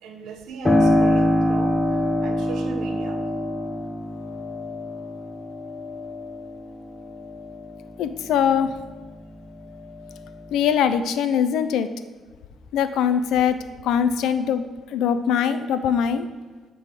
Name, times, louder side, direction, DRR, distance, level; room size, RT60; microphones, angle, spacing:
voice 1, 0.0-1.8 2.2-3.2, right 6 dB, 80° right, 5 dB, 0.8 m, -37 dB
Piano, 0.6-9.1 9.5-10.5, left 1 dB, 15° left, 0.8 m, -25 dB
voice 2, 8.0-8.7 10.5-11.9 12.7-16.3, left 8 dB, 85° left, 11 dB, 0.4 m, -22 dB
8.2 x 3.8 x 4.7 m, 1.4 s
cardioid pair, 90°, 0 cm